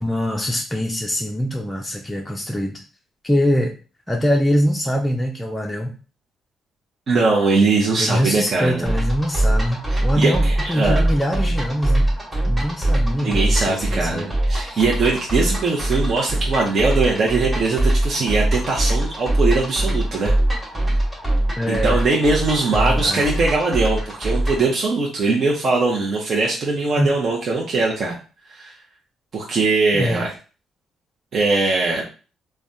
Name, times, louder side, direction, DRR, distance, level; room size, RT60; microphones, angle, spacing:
voice 1, 0.0-2.8 3.2-3.7 4.1-5.9 8.0-12.1 12.4-14.3 14.6-14.8 21.6-22.0 22.7-23.4 26.9-27.1 29.9-30.2, equal, 10° left, 0 dB, 0.4 m, -23 dB
voice 2, 7.1-8.9 9.9-10.3 10.6-11.1 13.2-20.3 21.7-28.2 28.5-28.7 29.3-30.3 31.3-32.0, right 3 dB, 50° right, -3 dB, 0.7 m, -21 dB
sound 1, 8.9-24.7, right 1 dB, 10° right, 1.1 m, -22 dB
3.3 x 2.2 x 2.5 m, 0.35 s
cardioid pair, 90°, 0 cm